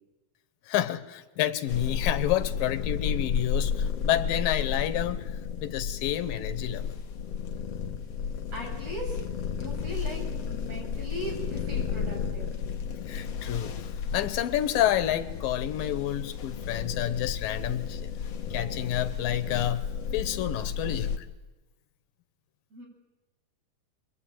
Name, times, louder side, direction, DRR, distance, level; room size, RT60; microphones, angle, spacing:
voice 1, 0.7-5.3 5.6-6.9 13.1-13.7 14.1-18.1 18.5-19.9 20.1-21.3, left 12 dB, 90° left, 2.8 m, -29 dB
sound 1, 1.7-21.2, left 7 dB, 55° left, 2.3 m, -33 dB
voice 2, 8.5-12.6 22.7-22.9, equal, 50° right, 9.2 m, -39 dB
28.0 x 22.5 x 9.1 m
omnidirectional pair, 3.9 m